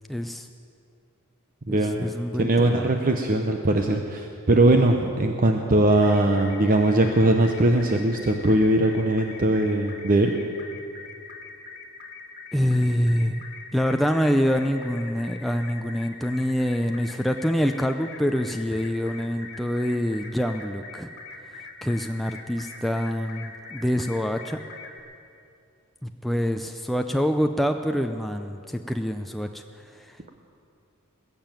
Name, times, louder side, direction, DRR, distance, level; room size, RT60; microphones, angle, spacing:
voice 1, 0.1-0.5 1.7-2.9 12.5-13.4 13.7-21.1 21.5-24.6 26.0-30.2, equal, ahead, 5 dB, 0.4 m, -26 dB
voice 2, 1.7-2.1 2.4-10.4, right 1 dB, 40° right, 4 dB, 0.8 m, -20 dB
sound 1, 5.9-25.0, left 3 dB, 50° left, 1.7 m, -43 dB
20.5 x 6.9 x 9.1 m, 2.5 s
head